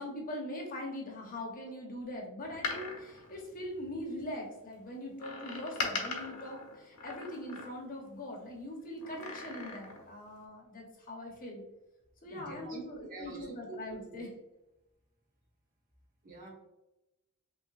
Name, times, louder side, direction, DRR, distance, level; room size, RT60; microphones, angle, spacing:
voice 1, 0.0-11.6 12.2-14.3, left 1 dB, 40° left, 0 dB, 1.0 m, -42 dB
Door, 2.4-4.2 5.2-8.1 9.0-10.1 10.4-10.5, left 4 dB, 80° left, 1.0 m, -40 dB
voice 2, 12.3-14.0 16.2-16.5, right 3 dB, 40° right, -2 dB, 1.1 m, -46 dB
5.9 x 2.8 x 2.5 m, 0.97 s
head